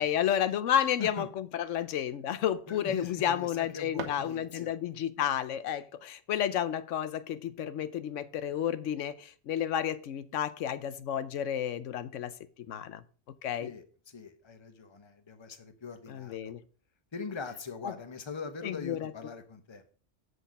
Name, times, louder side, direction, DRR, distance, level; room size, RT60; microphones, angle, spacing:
voice 1, 0.0-12.3 12.7-13.0 13.4-13.7 16.1-16.6 17.8-17.9 18.6-19.1, left 10 dB, 90° left, 1.0 m, -31 dB
voice 2, 2.7-4.7 13.6-16.3 17.1-19.8, left 4 dB, 25° left, 0.9 m, -42 dB
sound 1, 3.9-4.9, right 6 dB, 70° right, 1.2 m, -44 dB
7.8 x 6.5 x 5.1 m
omnidirectional pair, 1.2 m